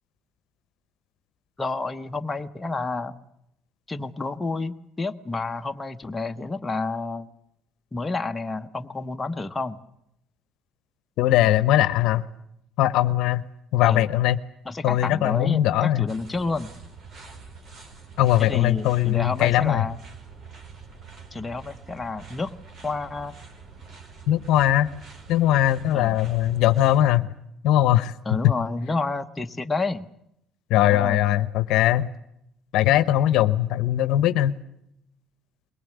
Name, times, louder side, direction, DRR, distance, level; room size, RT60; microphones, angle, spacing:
voice 1, 1.6-3.1 3.9-7.3 7.9-9.8 13.8-14.1 14.6-16.7 18.4-20.0 21.3-22.6 22.8-23.3 25.9-26.2 28.2-30.1 30.8-31.2, left 3 dB, 15° left, 7 dB, 1.0 m, -30 dB
voice 2, 11.2-12.2 12.8-13.4 13.7-14.4 14.8-16.1 18.2-19.8 24.3-24.9 25.3-27.3 27.6-28.5 30.7-32.1 32.7-34.6, left 13 dB, 75° left, 15 dB, 0.8 m, -20 dB
sound 1, 16.1-27.0, right 5 dB, 50° right, 4.1 m, -45 dB
22.0 x 18.5 x 9.3 m, 0.80 s
cardioid pair, 100°, 0 cm